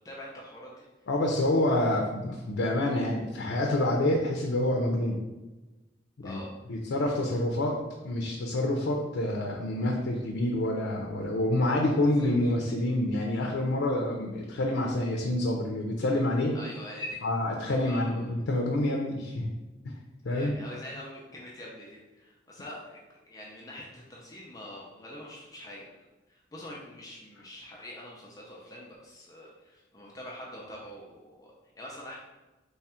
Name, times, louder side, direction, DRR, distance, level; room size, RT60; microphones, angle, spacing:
voice 1, 0.0-0.9 6.2-6.5 12.2-12.3 16.5-17.2 17.7-18.2 20.3-32.2, left 1 dB, 20° left, -3 dB, 0.4 m, -44 dB
voice 2, 1.1-5.2 6.2-6.4 6.7-7.8 8.0-16.6 17.2-19.5 19.8-20.0 20.2-20.6, left 1 dB, 90° left, 0 dB, 0.5 m, -27 dB
3.3 x 2.4 x 4.2 m, 1.1 s
head